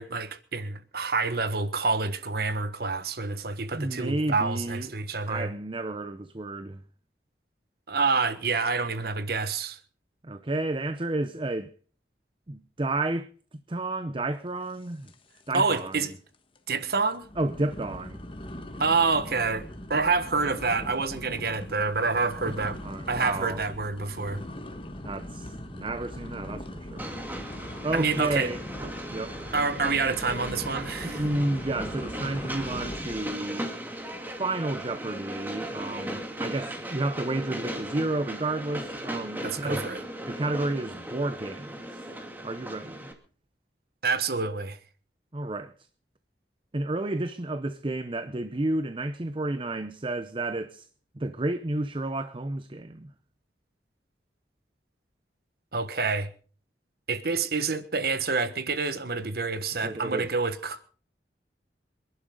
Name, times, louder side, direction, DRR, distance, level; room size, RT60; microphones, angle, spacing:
voice 1, 0.0-5.5 7.9-9.8 15.5-16.1 16.7-17.3 18.8-19.6 19.9-22.8 23.1-24.4 27.9-28.5 29.5-31.2 39.4-40.0 44.0-44.8 55.7-56.3 57.1-60.8, right 4 dB, 60° right, 1.4 m, -27 dB
voice 2, 3.7-4.9 5.3-6.8 10.2-11.7 12.5-13.3 13.7-15.1 15.5-16.0 17.4-18.2 22.4-22.5 22.8-23.6 25.0-27.1 27.8-29.4 31.0-33.7 34.4-39.8 40.3-42.1 42.4-43.1 45.3-45.7 46.7-50.9 51.1-53.1 59.8-60.3, right 2 dB, 30° right, 0.7 m, -31 dB
sound 1, 15.1-15.5 15.7-16.1 16.6-16.7 17.2-33.4, left 1 dB, 30° left, 1.5 m, -40 dB
Train, 27.0-43.1, right 1 dB, 10° right, 2.4 m, -37 dB
26.5 x 11.5 x 3.8 m
head